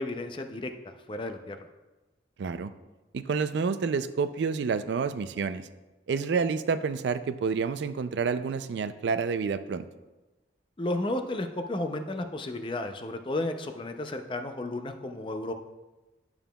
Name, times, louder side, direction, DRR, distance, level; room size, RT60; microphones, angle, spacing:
voice 1, 0.0-1.7 10.8-15.5, left 2 dB, 25° left, 6 dB, 0.5 m, -33 dB
voice 2, 2.4-2.7 3.1-5.7 6.1-9.9, right 5 dB, 75° right, 11 dB, 0.3 m, -29 dB
11.0 x 7.0 x 2.3 m, 1.1 s
head